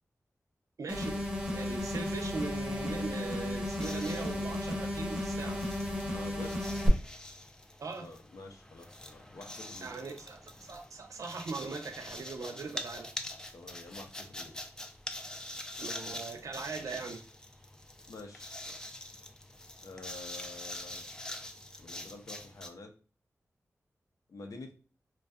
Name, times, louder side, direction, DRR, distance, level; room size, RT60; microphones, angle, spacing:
voice 1, 0.8-1.2 1.5-5.6 7.8-8.1 9.8-13.1 15.8-17.2, right 4 dB, 75° right, 0.4 m, -40 dB
sound 1, 0.9-6.9, left 1 dB, 10° right, 0.7 m, -34 dB
sound 2, 3.7-22.7, left 1 dB, 10° left, 0.3 m, -45 dB
voice 2, 6.1-6.6 8.0-10.1 13.5-14.5 18.1-18.7 19.8-21.0 21.8-22.9 24.3-24.7, left 2 dB, 80° left, 0.5 m, -48 dB
2.6 x 2.2 x 2.2 m
cardioid pair, 65°, 6 cm